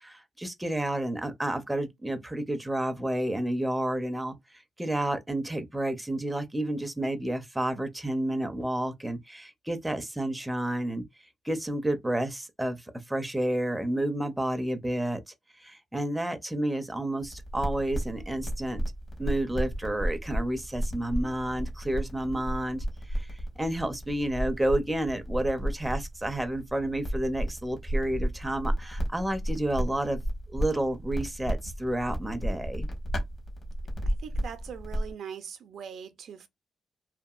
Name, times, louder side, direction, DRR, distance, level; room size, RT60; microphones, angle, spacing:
voice 1, 0.0-11.0 11.4-15.2 15.6-18.8 19.2-30.2 30.5-32.9, right 1 dB, 5° right, 0.5 m, -30 dB
sound 1, 17.2-35.1, right 1 dB, 45° left, 1.1 m, -33 dB
voice 2, 34.0-36.5, right 7 dB, 65° right, 0.5 m, -41 dB
2.7 x 2.5 x 2.3 m
cardioid pair, 140°, 0 cm